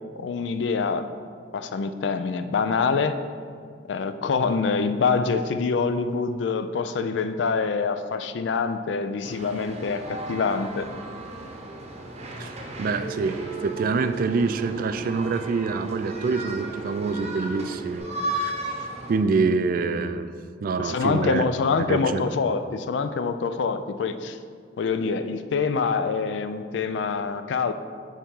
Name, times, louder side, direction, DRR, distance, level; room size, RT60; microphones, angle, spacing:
voice 1, 0.2-1.1 1.5-3.2 3.9-10.9 20.8-24.4 24.8-27.7, left 5 dB, 75° left, 10 dB, 0.4 m, -25 dB
sound 1, 9.2-19.2, right 1 dB, 35° right, 0.8 m, -35 dB
voice 2, 12.4-18.8 19.1-20.3 20.6-21.4 21.9-22.2, right 4 dB, 50° right, 11 dB, 0.3 m, -26 dB
Telephone, 13.0-18.0, right 7 dB, 45° left, 0.8 m, -37 dB
7.3 x 3.5 x 5.4 m, 2.1 s
head